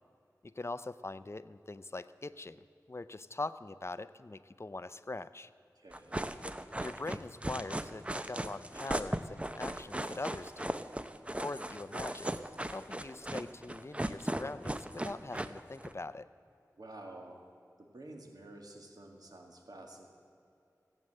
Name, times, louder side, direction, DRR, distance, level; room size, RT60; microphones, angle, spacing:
voice 1, 0.4-5.5 6.8-10.8 11.4-12.4 12.7-16.3, left 2 dB, 45° left, 14 dB, 0.5 m, -42 dB
voice 2, 5.8-6.3 16.8-17.5 17.8-20.1, right 2 dB, 85° right, 2 dB, 2.0 m, -50 dB
sound 1, 5.9-15.9, right 1 dB, 20° right, 0.7 m, -37 dB
16.5 x 9.1 x 7.6 m, 2.6 s
wide cardioid pair, 55°, 6 cm